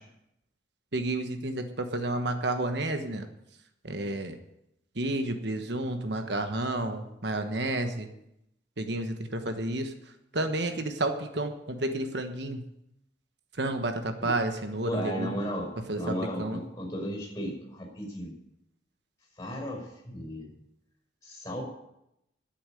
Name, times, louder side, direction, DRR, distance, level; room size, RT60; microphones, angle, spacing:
voice 1, 0.9-3.3 3.8-4.4 5.0-8.1 8.8-9.9 10.3-12.6 13.6-15.3 15.9-16.6, right 2 dB, 65° right, 7 dB, 1.2 m, -31 dB
voice 2, 14.8-15.7 15.9-18.3 19.4-20.5 21.2-21.6, equal, 20° left, 1 dB, 5.5 m, -35 dB
11.0 x 9.0 x 9.1 m, 0.83 s
head